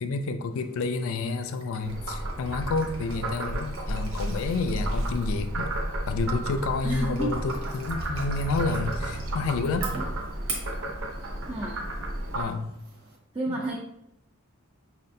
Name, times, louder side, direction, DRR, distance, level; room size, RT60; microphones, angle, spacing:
voice 1, 0.0-5.7 6.1-9.9 12.3-12.7 13.5-13.6, left 4 dB, 70° left, 9 dB, 0.3 m, -29 dB
sound 1, 0.5-13.2, right 3 dB, 80° right, 1.0 m, -44 dB
Frog, 1.8-12.4, right 1 dB, 65° right, 0.7 m, -32 dB
voice 2, 6.8-7.4 11.5-11.9 13.3-13.8, right 1 dB, 20° right, -2 dB, 0.4 m, -30 dB
5.2 x 2.4 x 2.6 m, 0.77 s
head